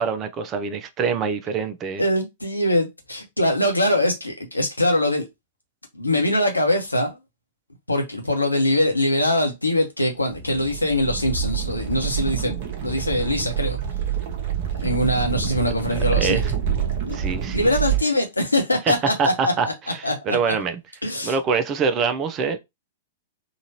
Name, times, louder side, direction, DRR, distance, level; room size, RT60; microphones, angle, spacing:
voice 1, 0.0-2.0 16.2-16.5 17.1-17.7 18.9-19.0 19.2-20.8 21.2-22.6, right 5 dB, 25° right, 0.6 m, -25 dB
voice 2, 2.0-5.2 5.9-7.2 7.9-13.8 14.8-16.4 17.0-17.2 17.5-19.7 20.0-20.5 21.0-21.3, left 1 dB, 85° left, 1.0 m, -23 dB
sound 1, 10.3-18.0, right 9 dB, 45° right, 0.9 m, -27 dB
3.9 x 2.5 x 2.8 m
figure-of-eight pair, 105°, 0 cm